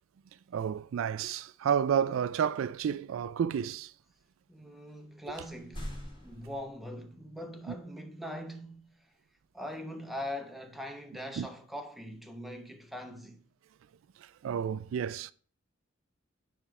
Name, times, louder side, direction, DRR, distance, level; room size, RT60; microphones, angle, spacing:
voice 1, 0.5-3.9 11.4-11.5 14.4-15.3, right 8 dB, 75° right, 0.3 m, -30 dB
voice 2, 4.5-9.1 9.5-13.4, left 1 dB, ahead, 0.9 m, -42 dB
sound 1, 4.9-5.0 5.3-7.4, equal, 25° left, 2.5 m, -44 dB
9.9 x 3.4 x 4.6 m
head